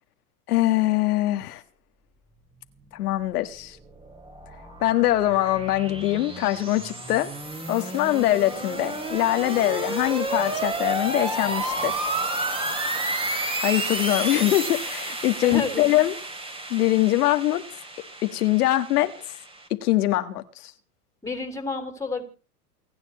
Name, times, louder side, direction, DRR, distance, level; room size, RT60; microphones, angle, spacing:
voice 1, 0.5-1.6 2.9-3.8 4.8-7.3 7.7-12.1 13.0-13.1 13.6-16.2 16.7-17.6 18.2-19.1 19.8-20.7, left 15 dB, 75° left, 1.8 m, -23 dB
sound 1, 3.6-19.7, right 2 dB, 10° right, 3.0 m, -31 dB
voice 2, 15.4-15.9 21.2-22.2, left 3 dB, 5° left, 3.2 m, -30 dB
29.0 x 9.7 x 3.1 m
hypercardioid pair, 110°, 46 cm